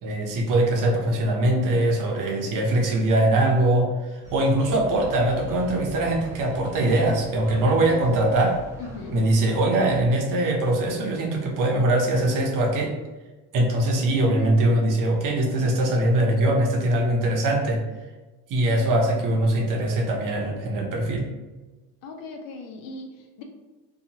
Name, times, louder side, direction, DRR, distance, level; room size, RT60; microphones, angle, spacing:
voice 1, 0.0-8.6 9.1-12.9 13.5-17.8 18.5-21.2, right 1 dB, 55° right, 1 dB, 0.8 m, -22 dB
sound 1, 4.2-9.3, equal, 10° right, 1.4 m, -40 dB
voice 2, 8.8-9.2 22.0-23.4, left 3 dB, 65° left, 3 dB, 0.6 m, -38 dB
2.7 x 2.3 x 2.8 m, 1.2 s
supercardioid pair, 85°, 38 cm